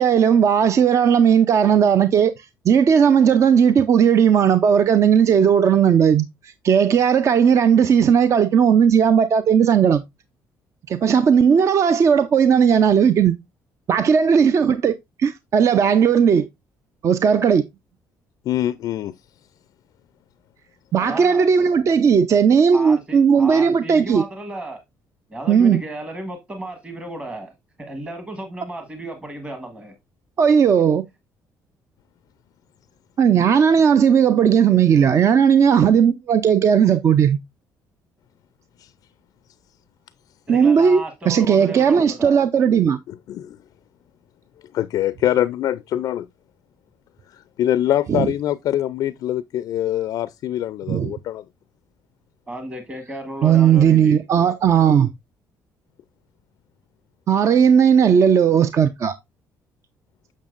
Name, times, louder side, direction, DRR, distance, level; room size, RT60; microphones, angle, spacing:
voice 1, 0.0-10.0 10.9-13.3 13.9-14.9 15.2-16.5 17.0-17.6 20.9-24.2 25.5-25.8 30.4-31.0 33.2-37.4 40.5-43.0 48.1-48.3 50.9-51.1 53.4-55.1 57.3-59.1, right 7 dB, 45° right, 0.5 m, -16 dB
voice 2, 18.5-19.1 38.8-38.9 43.1-43.6 44.7-46.3 47.3-51.4, left 12 dB, 65° left, 0.4 m, -24 dB
voice 3, 21.0-21.5 21.9-22.0 22.7-24.8 25.3-27.5 27.8-29.9 40.5-42.4 52.5-54.2, right 1 dB, 15° right, 1.3 m, -34 dB
7.2 x 6.3 x 2.4 m
cardioid pair, 120°, 7 cm